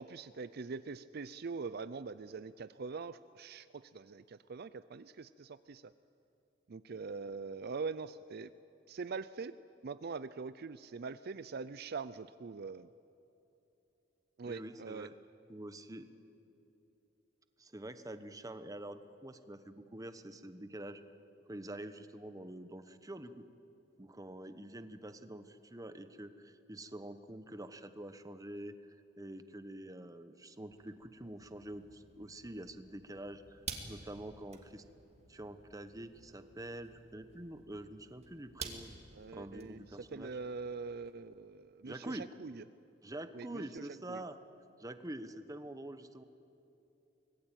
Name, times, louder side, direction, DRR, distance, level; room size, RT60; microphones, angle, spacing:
voice 1, 0.0-5.9 6.7-8.5 8.9-9.6 9.8-12.9 14.4-15.1 39.1-39.8 40.1-42.6 43.3-44.2, right 4 dB, 55° right, 15 dB, 0.5 m, -43 dB
voice 2, 14.5-15.1 15.5-16.1 17.6-21.0 21.5-23.4 24.0-28.8 29.2-33.6 33.9-34.8 35.3-39.0 39.3-40.3 41.8-42.3 43.0-44.4 44.8-46.2, right 1 dB, 20° right, 10 dB, 1.1 m, -46 dB
sound 1, 30.7-41.1, right 5 dB, 35° right, 2.4 m, -51 dB
24.5 x 20.0 x 9.0 m, 2.9 s
head